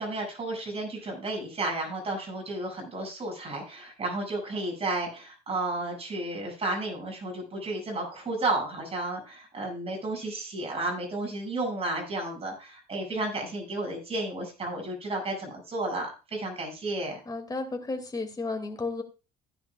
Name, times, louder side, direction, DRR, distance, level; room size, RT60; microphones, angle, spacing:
voice 1, 0.0-17.2, right 2 dB, 35° right, 1 dB, 7.5 m, -32 dB
voice 2, 17.3-19.0, left 3 dB, 20° left, 4 dB, 2.6 m, -33 dB
16.0 x 10.5 x 2.5 m, 0.32 s
cardioid pair, 110°, 17 cm